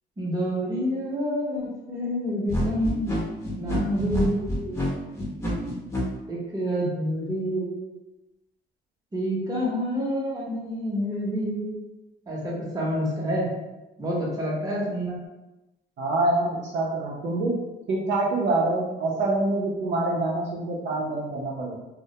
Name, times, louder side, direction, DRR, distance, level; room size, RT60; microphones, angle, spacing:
voice 1, 0.2-3.1 3.6-5.2 6.3-7.9 9.1-11.8 12.3-13.5 14.0-15.2, equal, 20° right, -4 dB, 0.8 m, -28 dB
sound 1, 2.5-6.0, equal, 15° left, 0.8 m, -27 dB
voice 2, 16.0-17.6 17.9-21.8, right 2 dB, 60° right, -4 dB, 0.6 m, -25 dB
2.1 x 2.1 x 2.7 m, 1.0 s
cardioid pair, 90°, 20 cm